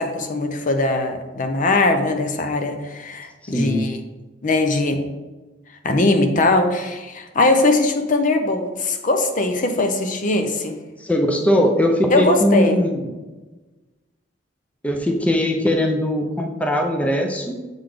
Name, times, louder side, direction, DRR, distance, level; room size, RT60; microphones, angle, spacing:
voice 1, 0.0-4.0 4.4-5.0 5.8-10.7 12.1-12.8, left 2 dB, 45° left, 6 dB, 0.6 m, -20 dB
voice 2, 3.4-3.9 11.0-13.1 14.8-17.6, equal, 10° left, 2 dB, 0.6 m, -20 dB
7.1 x 4.0 x 5.0 m, 1.2 s
head